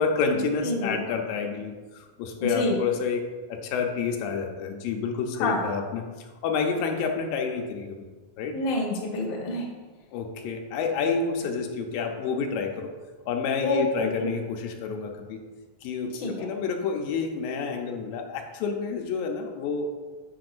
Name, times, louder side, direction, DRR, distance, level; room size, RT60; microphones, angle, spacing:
voice 1, 0.0-8.0 8.4-8.6 10.1-12.9 13.3-15.4 15.8-20.0, left 5 dB, 90° left, 3 dB, 2.4 m, -29 dB
voice 2, 0.6-1.0 2.4-2.8 5.3-5.6 8.5-9.7 13.6-14.3 16.1-16.5, left 2 dB, 55° left, -2 dB, 1.4 m, -27 dB
7.6 x 6.9 x 2.5 m, 1.3 s
omnidirectional pair, 3.9 m